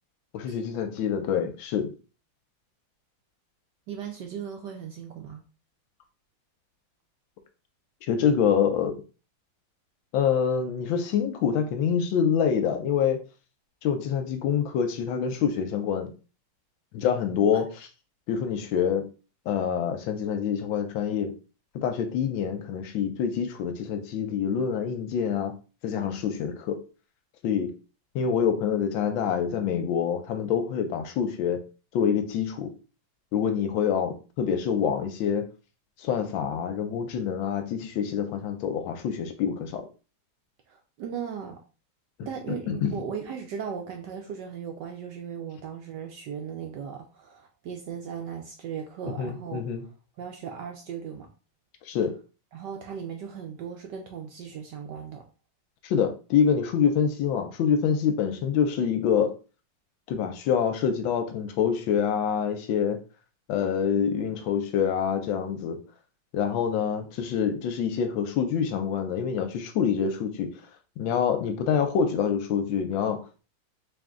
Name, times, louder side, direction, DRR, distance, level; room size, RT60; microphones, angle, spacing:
voice 1, 0.3-1.9 8.1-9.0 10.1-13.2 13.8-16.1 16.9-17.6 18.3-19.0 19.5-21.3 21.7-25.5 25.8-26.8 27.4-27.7 28.1-31.6 31.9-32.7 33.3-35.5 36.0-39.8 42.2-42.3 42.7-42.9 49.2-49.8 51.9-52.1 55.8-59.3 60.1-63.0 63.5-65.8 66.3-70.5 71.0-73.2, left 7 dB, 75° left, 7 dB, 1.3 m, -26 dB
voice 2, 3.9-5.4 17.5-17.6 40.7-41.6 42.2-49.6 50.2-51.3 52.5-55.2, right 7 dB, 75° right, 3 dB, 1.0 m, -37 dB
3.5 x 2.6 x 3.6 m, 0.34 s
omnidirectional pair, 2.3 m